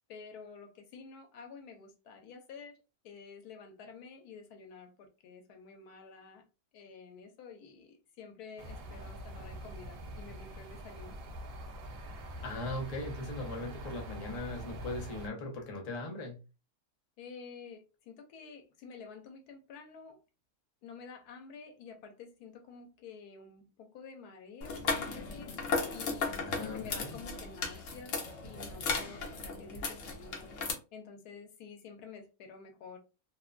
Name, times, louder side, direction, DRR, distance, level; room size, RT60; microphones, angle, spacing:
voice 1, 0.1-2.8 3.0-6.4 6.7-11.2 17.2-20.2 20.8-25.5 25.9-30.5 30.9-33.0, left 5 dB, 90° left, 5 dB, 1.2 m, -50 dB
sound 1, 8.6-15.3, right 1 dB, 75° right, 0.5 m, -44 dB
voice 2, 12.4-16.4 26.4-27.1, left 2 dB, 40° left, 1 dB, 0.5 m, -39 dB
sound 2, 24.6-30.7, left 4 dB, 60° left, 1.0 m, -36 dB
2.9 x 2.1 x 2.4 m, 0.30 s
omnidirectional pair, 1.6 m